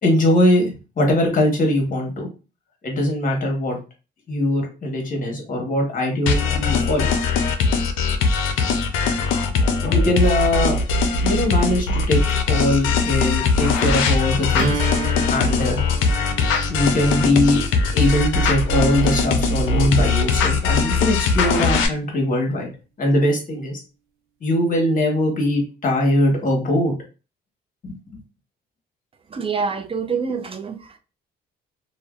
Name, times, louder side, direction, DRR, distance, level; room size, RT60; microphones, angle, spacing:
voice 1, 0.0-2.3 2.8-3.8 4.3-7.1 9.0-9.1 9.8-10.8 11.2-12.2 12.5-14.8 15.3-15.8 16.7-17.6 17.9-22.7 23.0-23.8 24.4-26.9 27.8-27.9, left 1 dB, 45° left, 1.1 m, -21 dB
sound 1, 6.3-21.9, left 4 dB, 85° left, 0.4 m, -20 dB
sound 2, 14.6-20.6, right 8 dB, 85° right, 0.5 m, -34 dB
voice 2, 29.3-31.0, right 5 dB, 30° right, 0.4 m, -26 dB
2.6 x 2.1 x 2.3 m
cardioid pair, 90°, 20 cm